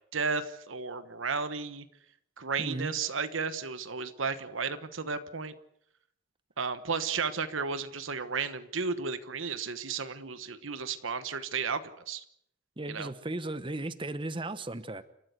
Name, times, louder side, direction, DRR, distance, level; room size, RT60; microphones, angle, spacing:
voice 1, 0.1-1.8 2.4-5.5 6.6-12.2 12.9-13.1, right 5 dB, 75° right, 11 dB, 1.2 m, -33 dB
voice 2, 2.6-2.9 12.8-15.0, right 2 dB, 25° right, 12 dB, 1.0 m, -36 dB
29.5 x 14.0 x 8.2 m, 0.71 s
head